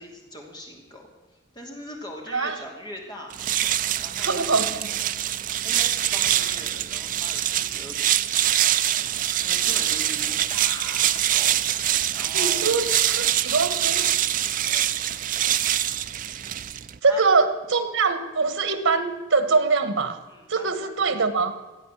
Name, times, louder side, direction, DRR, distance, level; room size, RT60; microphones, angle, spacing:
voice 1, 0.0-3.3 4.0-4.6 5.6-9.1 9.4-11.6 12.1-12.8 14.3-14.9 17.1-17.2 20.3-20.9, equal, 20° left, 0 dB, 2.6 m, -41 dB
sound 1, 3.3-17.0, right 12 dB, 40° right, 0.4 m, -24 dB
voice 2, 4.2-4.9 12.3-14.0 17.0-20.2 20.5-21.5, right 4 dB, 85° right, 11 dB, 1.4 m, -23 dB
15.5 x 9.2 x 7.5 m, 1.2 s
head